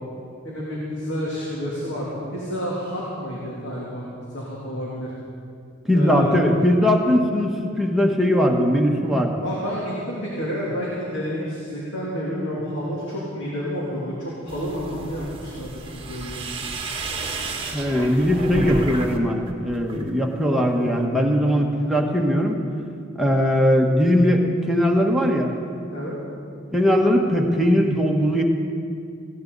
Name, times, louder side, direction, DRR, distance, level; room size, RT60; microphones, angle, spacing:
voice 1, 0.4-4.0 4.3-5.1 5.9-6.4 9.4-16.6 25.9-26.2, equal, 65° left, -6 dB, 2.9 m, -30 dB
voice 2, 5.8-9.4 17.7-22.6 23.2-25.5 26.7-28.4, equal, ahead, -1 dB, 1.4 m, -20 dB
sound 1, 14.5-19.2 19.5-20.1, right 2 dB, 25° right, 1.3 m, -31 dB
19.5 x 17.0 x 4.1 m, 2.4 s
head